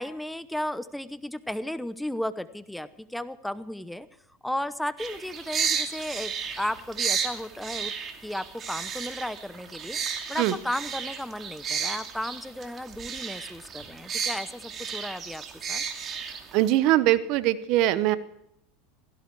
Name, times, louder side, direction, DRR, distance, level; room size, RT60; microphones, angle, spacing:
voice 1, 0.0-4.1 4.4-7.9 8.2-10.0 10.3-15.4 15.7-15.8, left 1 dB, 5° left, 14 dB, 0.9 m, -34 dB
sound 1, 5.0-16.7, right 6 dB, 35° right, 2.6 m, -33 dB
voice 2, 16.5-18.2, right 14 dB, 60° right, 15 dB, 1.0 m, -22 dB
16.5 x 16.0 x 4.7 m, 0.76 s
hypercardioid pair, 100°, 0 cm